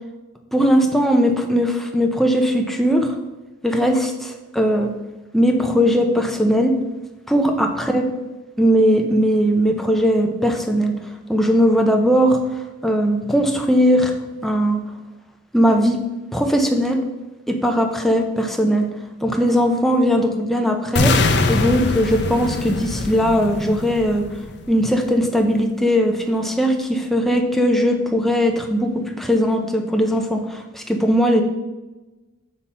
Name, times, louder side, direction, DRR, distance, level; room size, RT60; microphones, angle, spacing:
voice 1, 0.5-3.2 3.6-4.9 5.3-6.7 7.3-8.0 8.6-10.9 11.3-12.4 12.8-14.2 14.4-14.8 15.5-16.0 16.3-17.0 17.5-18.9 19.2-21.2 21.5-24.3 24.7-31.4, equal, ahead, 3 dB, 0.7 m, -19 dB
sound 1, 21.0-25.0, left 3 dB, 55° left, 0.6 m, -22 dB
7.9 x 4.2 x 5.5 m, 1.1 s
head